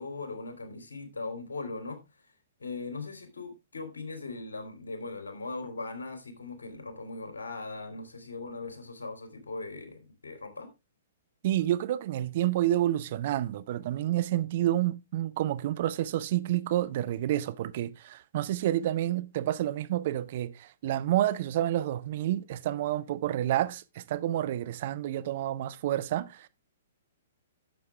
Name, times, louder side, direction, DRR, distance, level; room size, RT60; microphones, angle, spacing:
voice 1, 0.0-2.0 2.6-10.7, left 3 dB, 70° left, 3.0 m, -39 dB
voice 2, 11.4-26.5, right 13 dB, 45° right, 0.7 m, -29 dB
11.5 x 7.2 x 3.4 m
figure-of-eight pair, 115°, 0 cm